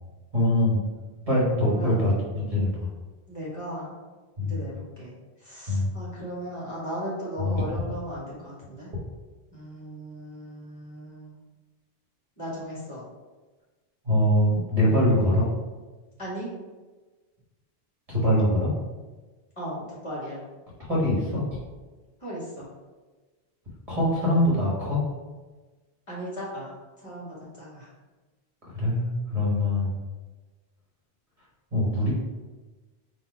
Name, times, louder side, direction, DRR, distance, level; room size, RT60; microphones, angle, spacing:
voice 1, 0.3-0.8 1.2-2.9 4.4-4.6 5.7-5.9 7.4-7.6 14.0-15.5 18.1-18.7 20.9-21.4 23.9-25.0 28.7-29.9 31.7-32.1, left 1 dB, 35° right, -6 dB, 1.2 m, -23 dB
voice 2, 1.6-2.0 3.3-3.9 4.4-5.1 5.4-8.9 9.5-11.3 12.4-13.0 16.2-16.5 19.6-20.4 22.2-22.7 26.1-26.7 27.0-27.9, equal, 30° left, -7 dB, 1.3 m, -36 dB
4.1 x 2.4 x 4.6 m, 1.3 s
omnidirectional pair, 1.1 m